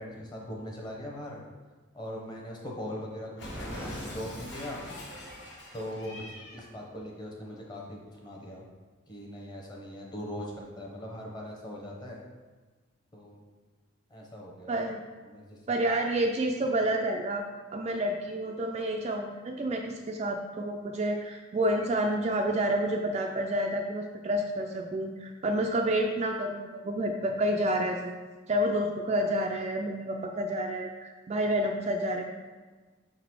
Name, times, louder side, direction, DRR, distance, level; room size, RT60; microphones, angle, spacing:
voice 1, 0.0-1.4 1.9-4.8 5.7-8.7 9.1-12.2 13.1-13.4 14.1-14.8 15.3-15.6, equal, 20° left, -2 dB, 0.9 m, -40 dB
Cat, 3.4-6.7, left 1 dB, 55° left, 1.3 m, -41 dB
voice 2, 14.7-15.0 15.7-17.5 17.7-28.2 28.5-32.3, right 1 dB, 30° right, 2 dB, 0.3 m, -29 dB
5.5 x 4.0 x 4.6 m, 1.3 s
head